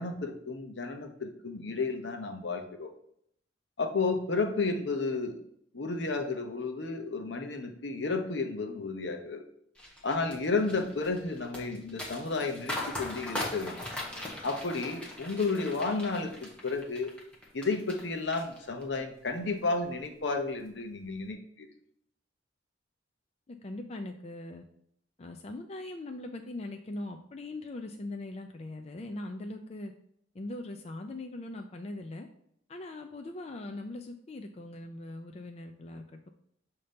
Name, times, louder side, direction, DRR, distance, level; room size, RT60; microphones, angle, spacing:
voice 1, 0.0-2.9 3.8-5.4 5.7-9.4 10.0-13.8 14.4-17.1 17.5-21.7, left 3 dB, 70° left, 5 dB, 0.8 m, -32 dB
sound 1, 9.8-18.0 18.3-19.0 19.4-19.6, left 1 dB, 5° left, 1.1 m, -40 dB
voice 2, 23.5-24.6 25.2-29.9 30.3-32.3 32.7-36.3, left 2 dB, 35° left, 4 dB, 0.4 m, -41 dB
6.5 x 2.9 x 5.1 m, 0.69 s
head